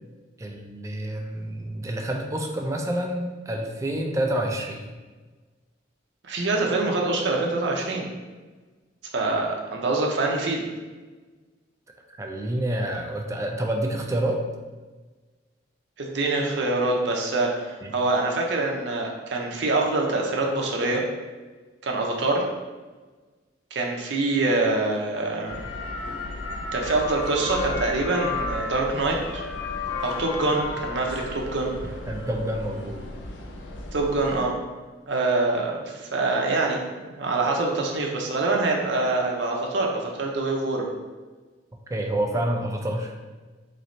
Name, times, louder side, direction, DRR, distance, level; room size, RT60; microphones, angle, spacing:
voice 1, 0.4-4.9 12.1-14.4 17.8-17.9 32.1-33.1 41.9-43.1, right 1 dB, 15° right, 2 dB, 0.4 m, -28 dB
voice 2, 6.2-8.1 9.1-10.6 16.0-21.0 21.8-22.4 23.7-25.6 26.7-29.4 30.0-31.7 33.9-34.5 35.1-36.8 37.1-40.9, right 2 dB, 70° right, -1 dB, 0.6 m, -25 dB
sound 1, 25.5-34.4, left 3 dB, 85° left, 0.5 m, -33 dB
3.9 x 3.1 x 2.6 m, 1.3 s
head